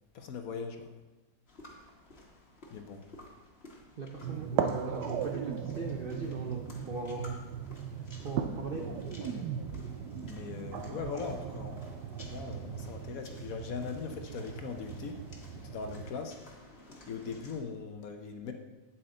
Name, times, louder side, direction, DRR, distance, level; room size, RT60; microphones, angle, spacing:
voice 1, 0.1-0.9 2.7-3.0 8.8-8.9 9.2-9.5 10.3-11.8 12.2-15.2 15.5-16.3 17.1-18.5, left 5 dB, 60° left, 5 dB, 1.1 m, -40 dB
sound 1, 1.5-17.6, left 2 dB, 40° left, 1.6 m, -54 dB
voice 2, 4.0-7.4 8.2-9.0, right 3 dB, 55° right, 1 dB, 0.6 m, -39 dB
sound 2, 4.2-16.1, right 8 dB, 75° right, 1.2 m, -38 dB
8.8 x 8.5 x 3.8 m, 1.1 s
omnidirectional pair, 1.9 m